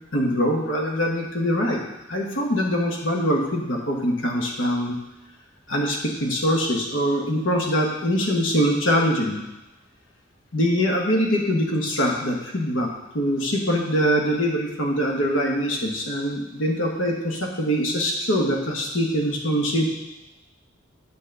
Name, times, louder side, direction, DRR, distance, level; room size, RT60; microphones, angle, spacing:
voice 1, 0.1-1.8 2.1-5.0 5.7-9.4 10.5-12.9 13.1-19.9, equal, 85° left, 0 dB, 1.4 m, -23 dB
8.3 x 4.1 x 6.7 m, 0.98 s
head